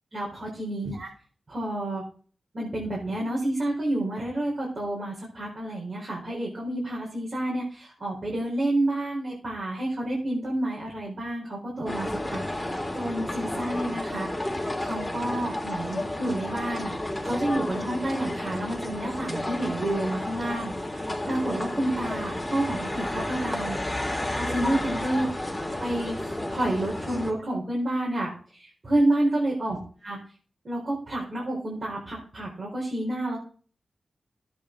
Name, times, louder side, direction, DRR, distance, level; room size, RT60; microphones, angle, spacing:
voice 1, 0.1-1.1 1.5-2.0 2.5-14.3 14.5-17.0 17.2-24.0 24.4-25.3 25.8-29.8 30.0-30.2 30.6-33.4, right 1 dB, 55° right, -3 dB, 4.3 m, -29 dB
sound 1, 11.9-27.3, left 1 dB, 15° left, 2.7 m, -32 dB
12.5 x 8.6 x 3.9 m, 0.43 s
cardioid pair, 40°, 0 cm